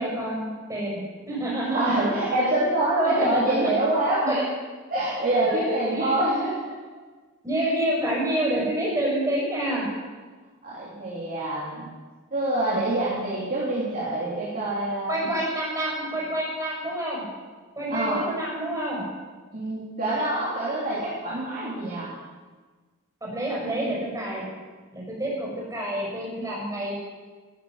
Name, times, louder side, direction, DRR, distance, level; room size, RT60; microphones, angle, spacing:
voice 1, 0.0-2.2 3.0-3.5 4.3-4.4 5.5-6.1 7.4-9.9 15.1-17.2 17.7-19.0 23.2-24.4 24.9-26.9, right 1 dB, 15° right, -4 dB, 6.3 m, -28 dB
voice 2, 1.6-4.4 4.9-6.6 7.6-7.7 10.6-11.9 12.3-15.3 17.9-18.3 19.5-22.1, right 1 dB, 40° right, -7 dB, 3.3 m, -25 dB
14.5 x 9.3 x 7.8 m, 1.4 s
head